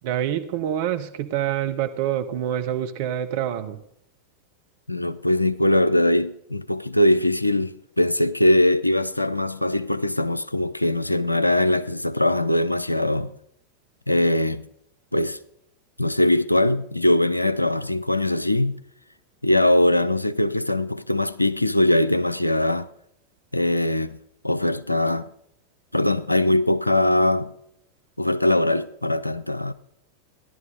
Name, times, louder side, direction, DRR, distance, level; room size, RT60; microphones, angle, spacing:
voice 1, 0.0-3.8, right 11 dB, 50° right, 1.1 m, -26 dB
voice 2, 4.9-13.3 14.1-14.6 15.1-15.4 16.0-18.8 19.4-22.9 23.5-24.2 24.4-25.3 25.9-27.5 28.2-29.7, left 1 dB, 85° left, 0.5 m, -21 dB
15.5 x 11.0 x 5.2 m
figure-of-eight pair, 90°, 0 cm